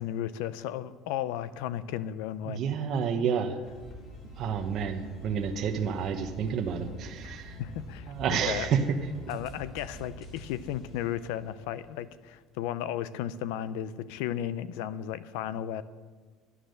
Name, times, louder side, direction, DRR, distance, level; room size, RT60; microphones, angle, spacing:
voice 1, 0.0-2.6 7.2-8.7 9.3-15.8, left 11 dB, 85° left, 16 dB, 0.6 m, -34 dB
voice 2, 2.5-3.6 4.4-7.6 8.1-9.0, right 7 dB, 45° right, 4 dB, 1.0 m, -29 dB
sound 1, 3.6-12.1, left 1 dB, 45° left, 3.6 m, -46 dB
11.0 x 10.0 x 6.5 m, 1.4 s
cardioid pair, 150°, 0 cm